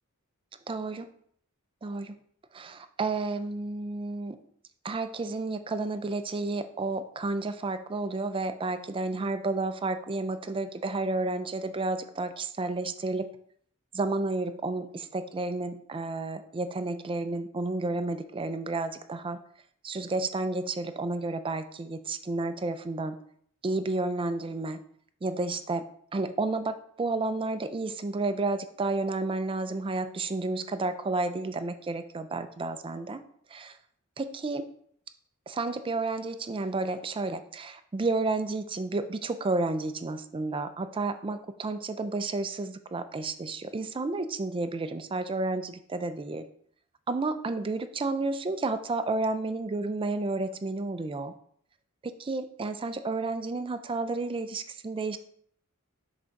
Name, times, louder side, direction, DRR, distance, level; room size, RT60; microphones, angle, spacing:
voice 1, 0.7-1.1 1.8-2.2 2.5-4.4 4.8-13.3 13.9-19.4 19.8-23.2 23.6-24.8 25.2-25.8 26.1-33.2 33.5-33.8 34.2-34.6 35.5-46.4 47.1-51.3 52.0-55.2, right 3 dB, 25° right, 10 dB, 0.4 m, -31 dB
6.4 x 3.6 x 4.5 m, 0.64 s
head